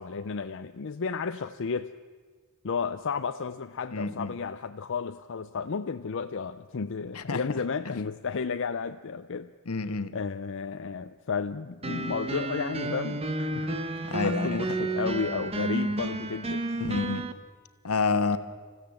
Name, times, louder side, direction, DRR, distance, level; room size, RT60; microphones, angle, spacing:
voice 1, 0.0-1.9 2.6-9.5 10.1-16.8, left 5 dB, 60° left, 9 dB, 0.5 m, -33 dB
voice 2, 3.9-4.4 7.1-7.4 9.7-10.1 14.1-14.8 16.8-17.3 17.8-18.4, left 4 dB, 80° left, 10 dB, 1.2 m, -28 dB
sound 1, 11.8-17.3, right 2 dB, 25° right, 1.0 m, -31 dB
27.5 x 15.5 x 7.7 m, 1.5 s
head